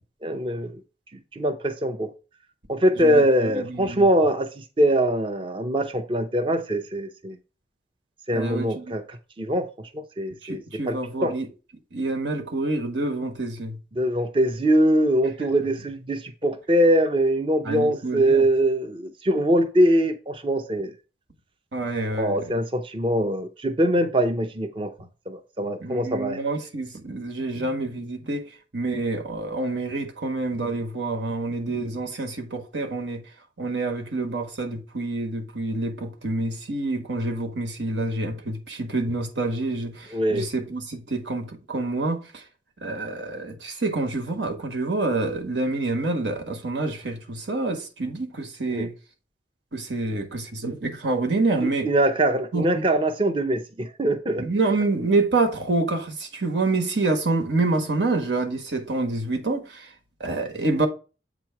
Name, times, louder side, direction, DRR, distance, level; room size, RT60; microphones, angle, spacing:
voice 1, 0.2-0.7 1.3-2.1 2.7-7.4 8.3-10.6 10.9-11.3 14.0-20.9 22.1-24.9 25.3-26.4 40.1-40.5 48.7-48.9 51.8-54.4, right 1 dB, 30° right, 0.6 m, -23 dB
voice 2, 3.0-4.1 8.3-8.9 10.4-11.5 11.9-13.8 17.6-18.5 21.7-22.5 25.8-33.2 33.6-42.4 42.8-48.9 49.7-51.9 52.5-52.8 54.3-59.9 60.2-60.9, right 2 dB, 85° right, 1.4 m, -27 dB
7.8 x 3.0 x 5.7 m
head